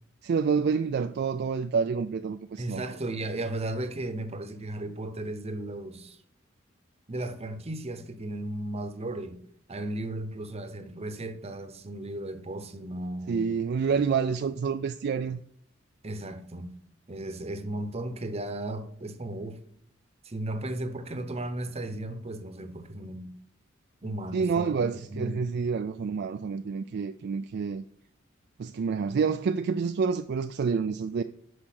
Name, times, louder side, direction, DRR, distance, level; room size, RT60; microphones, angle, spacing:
voice 1, 0.2-2.8 13.3-15.4 24.3-27.8 28.6-31.2, right 5 dB, 55° right, 0.3 m, -28 dB
voice 2, 2.6-6.2 7.1-9.4 9.7-13.4 16.0-16.7 17.1-19.6 20.2-23.3 24.0-25.4, right 1 dB, 30° right, 0.9 m, -35 dB
9.9 x 5.0 x 6.0 m
head